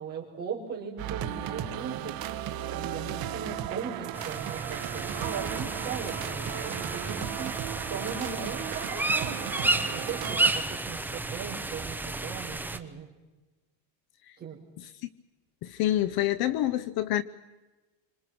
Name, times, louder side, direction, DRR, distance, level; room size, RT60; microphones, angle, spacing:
voice 1, 0.0-2.2 2.7-7.5 7.9-13.1 14.4-14.6, right 6 dB, 20° right, -4 dB, 6.1 m, -38 dB
sound 1, 1.0-10.5, right 12 dB, 45° right, 1.4 m, -36 dB
sound 2, 4.1-12.8, right 2 dB, 5° right, 0.9 m, -32 dB
voice 2, 15.6-17.2, left 13 dB, 50° left, 16 dB, 0.8 m, -27 dB
27.0 x 26.0 x 6.2 m, 1.1 s
cardioid pair, 155°, 50 cm